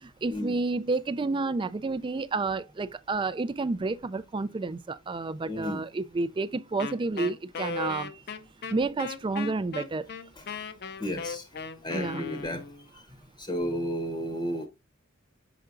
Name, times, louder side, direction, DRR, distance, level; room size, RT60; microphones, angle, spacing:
voice 1, 0.0-8.2 8.7-10.1 11.9-12.2, right 3 dB, 25° right, 0.3 m, -30 dB
voice 2, 5.5-5.8 10.4-10.5 11.0-11.5 11.8-12.6 13.1-14.7, equal, 20° left, 0.8 m, -33 dB
Wind instrument woodwind instrument, 6.8-12.9, left 5 dB, 50° left, 0.5 m, -37 dB
6.5 x 5.8 x 2.5 m
head